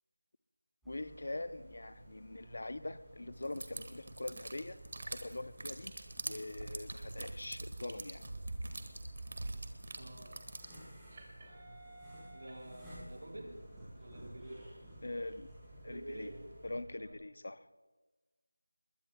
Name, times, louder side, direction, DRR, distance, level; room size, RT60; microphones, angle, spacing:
sound 1, 0.8-16.8, right 1 dB, ahead, 4.5 m, -54 dB
voice 1, 0.9-4.8 5.1-5.9 6.2-8.2 15.0-15.5 15.8-16.3 16.6-17.7, left 2 dB, 55° left, 13 dB, 0.7 m, -43 dB
sound 2, 3.4-10.9, right 2 dB, 50° right, 1.5 m, -44 dB
sound 3, 8.4-17.1, right 2 dB, 30° right, 3.0 m, -62 dB
voice 2, 10.0-10.4 12.3-13.5 14.0-14.8 15.8-16.4 16.9-17.2, right 1 dB, 70° right, -1 dB, 5.2 m, -48 dB
28.0 x 21.5 x 2.3 m, 1.3 s
figure-of-eight pair, 170°, 0 cm